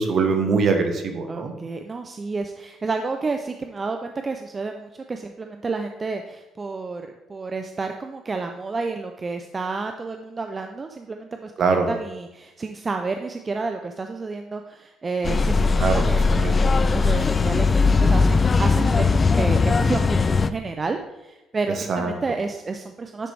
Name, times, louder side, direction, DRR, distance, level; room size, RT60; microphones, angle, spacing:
voice 1, 0.0-1.5 11.6-11.9 15.8-16.0 16.3-16.6 21.9-22.1, right 4 dB, 55° right, 5 dB, 1.2 m, -22 dB
voice 2, 1.3-11.5 11.9-23.3, right 4 dB, 30° right, 5 dB, 0.5 m, -30 dB
sound 1, 15.2-20.5, left 4 dB, 30° left, 0.4 m, -19 dB
10.0 x 4.7 x 3.4 m, 1.0 s
supercardioid pair, 80°, 0 cm